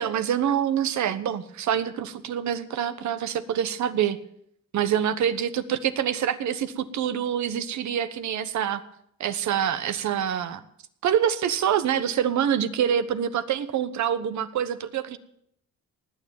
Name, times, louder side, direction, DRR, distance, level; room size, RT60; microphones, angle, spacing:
voice 1, 0.0-4.2 4.7-8.8 9.2-10.6 11.0-15.2, right 9 dB, 70° right, 12 dB, 1.2 m, -26 dB
19.0 x 7.2 x 9.3 m, 0.72 s
cardioid pair, 90°, 30 cm